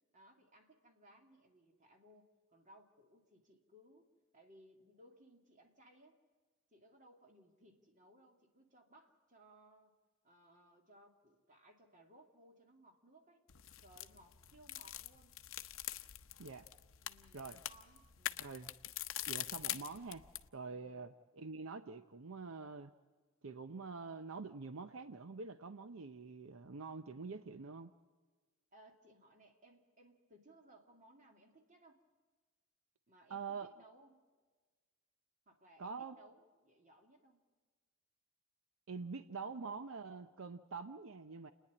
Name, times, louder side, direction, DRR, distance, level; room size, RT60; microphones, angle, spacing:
voice 1, 0.1-4.1 4.3-6.2 6.7-9.9 10.2-13.4 13.8-15.4 17.0-18.4 20.7-21.1 28.7-32.0 33.1-34.2 35.5-37.4, right 1 dB, 35° right, 3 dB, 2.5 m, -64 dB
sound 1, 13.5-20.5, left 13 dB, 70° left, 0.7 m, -44 dB
voice 2, 18.4-18.7 19.3-20.2 20.5-22.9 23.4-27.9 33.3-33.7 35.8-36.2 38.9-41.5, right 4 dB, 75° right, 11 dB, 0.7 m, -46 dB
29.5 x 10.0 x 9.6 m, 1.4 s
head